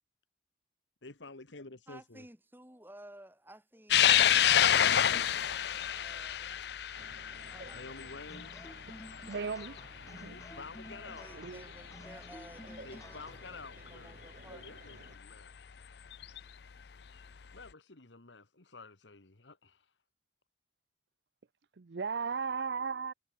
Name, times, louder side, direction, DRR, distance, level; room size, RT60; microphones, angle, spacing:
voice 1, 1.0-2.3 7.7-8.7 10.3-11.3 12.8-14.2 14.5-15.5 17.5-19.9, left 3 dB, 85° left, 1.8 m, -50 dB
voice 2, 1.9-6.8 7.5-8.2 10.9-14.7, right 1 dB, 10° right, 3.3 m, -56 dB
sound 1, 3.9-10.6 11.0-11.1 12.4-12.5 14.6-14.7 16.1-16.4, left 10 dB, 65° left, 0.5 m, -28 dB
sound 2, 6.9-15.2, right 2 dB, 50° right, 2.2 m, -55 dB
sound 3, 8.3-13.6, left 1 dB, 20° left, 0.7 m, -53 dB
voice 3, 9.3-9.8 10.1-10.4 11.3-11.6 21.7-23.1, right 5 dB, 70° right, 0.6 m, -36 dB
head